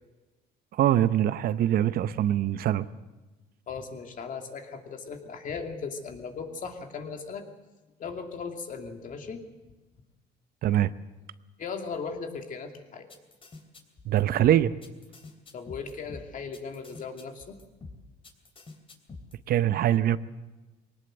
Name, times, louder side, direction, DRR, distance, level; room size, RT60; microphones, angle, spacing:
voice 1, 0.8-2.9 10.6-10.9 14.1-14.7 19.5-20.2, right 11 dB, 60° right, 15 dB, 0.8 m, -23 dB
voice 2, 3.7-7.5 8.0-9.4 11.6-13.1 15.5-17.6, left 5 dB, 50° left, 5 dB, 2.6 m, -37 dB
sound 1, 13.1-19.4, left 3 dB, 30° left, 3.2 m, -47 dB
21.0 x 18.5 x 7.9 m, 1.1 s
cardioid pair, 110°, 17 cm